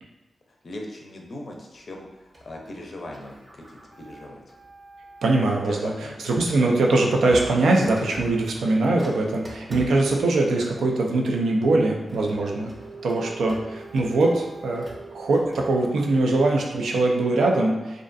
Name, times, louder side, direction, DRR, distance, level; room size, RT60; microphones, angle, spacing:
voice 1, 0.5-3.7 4.0-4.4 5.7-6.3, left 1 dB, 55° left, 0 dB, 0.5 m, -39 dB
Printer, 2.3-5.6 6.3-16.9, right 2 dB, 35° right, 0.6 m, -43 dB
voice 2, 5.2-5.9 6.2-12.7 13.0-14.9 15.1-18.0, right 2 dB, 85° right, 0 dB, 0.4 m, -22 dB
2.4 x 2.2 x 2.5 m, 1.1 s
cardioid pair, 50°, 0 cm